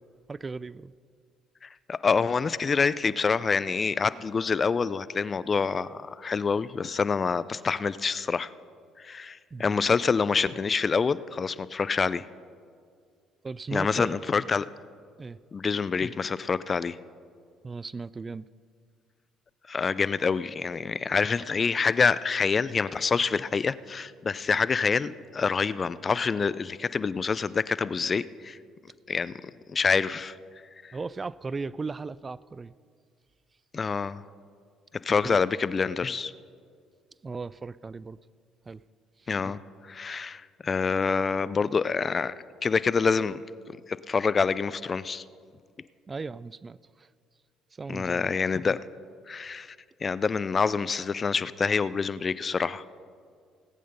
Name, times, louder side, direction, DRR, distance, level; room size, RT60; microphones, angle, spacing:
voice 1, 0.3-0.9 9.5-9.7 13.4-14.2 15.2-15.4 17.6-18.5 30.9-32.7 35.2-35.4 37.2-38.2 38.7-38.8 46.1-47.1 47.8-48.3, right 4 dB, 30° right, 20 dB, 0.3 m, -37 dB
voice 2, 1.6-8.5 9.0-12.3 13.7-14.7 15.5-17.0 19.7-28.6 29.1-30.4 30.8-31.0 33.7-34.2 35.0-36.3 39.3-39.6 39.9-42.3 42.6-43.4 43.9-45.2 47.9-48.8 49.3-49.8 50.0-52.8, left 5 dB, 40° left, 17 dB, 0.4 m, -26 dB
18.0 x 8.6 x 5.4 m, 2.1 s
hypercardioid pair, 55°, 0 cm